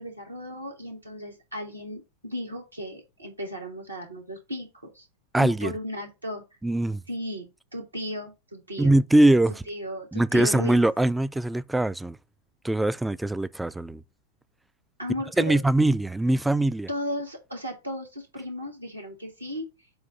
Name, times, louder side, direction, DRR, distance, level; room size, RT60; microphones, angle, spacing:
voice 1, 0.0-5.1 5.4-6.4 7.1-7.5 7.7-9.0 9.7-10.8 15.0-15.6 16.9-19.7, equal, 80° right, 1.9 m, -35 dB
voice 2, 5.3-5.7 6.6-7.0 8.8-9.6 10.1-12.2 12.6-14.0 15.4-16.9, right 1 dB, 5° right, 0.3 m, -22 dB
7.7 x 2.6 x 5.6 m
figure-of-eight pair, 90°, 0 cm